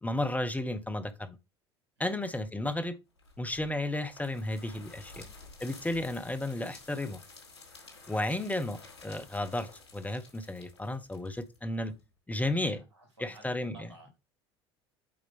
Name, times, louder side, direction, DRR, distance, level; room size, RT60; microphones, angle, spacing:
voice 1, 0.0-1.4 2.0-2.9 3.4-5.3 5.6-7.2 8.1-11.9 12.3-12.8 13.2-13.9, left 1 dB, 10° left, 1.2 m, -33 dB
sound 1, 3.2-12.0, left 3 dB, 85° left, 4.0 m, -53 dB
voice 2, 12.5-14.2, right 2 dB, 85° right, 3.2 m, -55 dB
8.8 x 4.8 x 3.5 m
hypercardioid pair, 70°, 14 cm